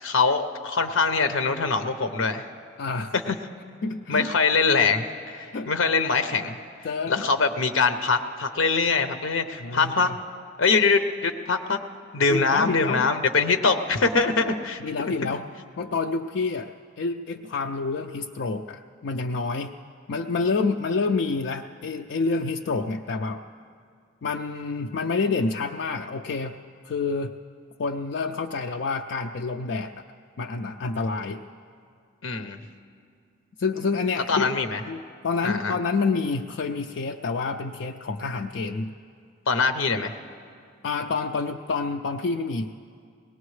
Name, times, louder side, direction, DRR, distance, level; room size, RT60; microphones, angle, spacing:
voice 1, 0.0-2.4 3.3-3.4 4.1-6.6 7.1-10.1 10.6-11.8 12.1-15.1 32.2-32.6 34.3-34.8 35.4-35.7 39.5-40.1, left 4 dB, 80° left, 8 dB, 0.8 m, -23 dB
voice 2, 2.8-3.1 3.8-4.3 5.5-5.7 6.8-7.2 9.6-10.1 12.3-13.1 14.8-15.4 15.8-19.7 20.1-23.4 24.2-26.6 26.8-27.3 27.8-30.1 30.4-31.4 33.6-34.5 34.9-38.9 40.8-42.8, left 4 dB, 60° left, 3 dB, 0.4 m, -28 dB
21.5 x 18.5 x 3.2 m, 2.3 s
head